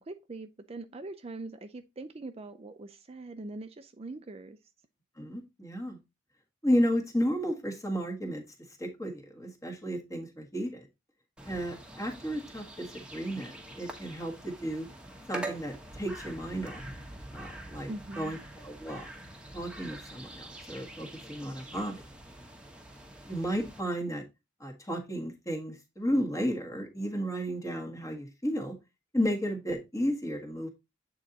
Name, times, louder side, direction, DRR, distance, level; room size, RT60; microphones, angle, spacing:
voice 1, 0.0-4.6 17.9-18.4, right 2 dB, 30° right, 0.5 m, -42 dB
voice 2, 5.2-6.0 6.6-8.4 8.8-10.9 11.4-14.9 15.3-16.8 17.3-17.9 18.2-19.1 19.5-22.0 23.3-24.2 24.6-28.7 29.1-30.7, equal, 15° left, 1.6 m, -33 dB
sound 1, 11.4-23.8, right 1 dB, 5° right, 1.2 m, -45 dB
8.6 x 3.9 x 4.0 m
head